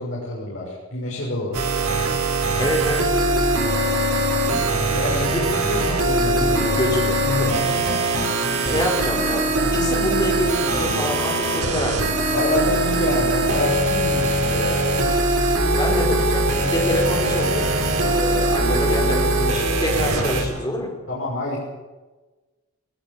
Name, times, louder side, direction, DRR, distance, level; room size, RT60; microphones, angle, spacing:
voice 1, 0.0-1.7 4.6-5.3 5.7-6.6 12.3-14.9 21.1-21.6, left 2 dB, 60° left, -5 dB, 6.3 m, -27 dB
sound 1, 1.5-20.4, right 2 dB, 85° right, 5.1 m, -21 dB
voice 2, 2.6-3.1 5.1-5.7 6.4-7.8 8.6-12.1 13.3-13.7 14.5-14.7 15.8-17.7 18.0-20.9, equal, 20° left, 0 dB, 5.1 m, -26 dB
19.5 x 19.0 x 8.7 m, 1.2 s
head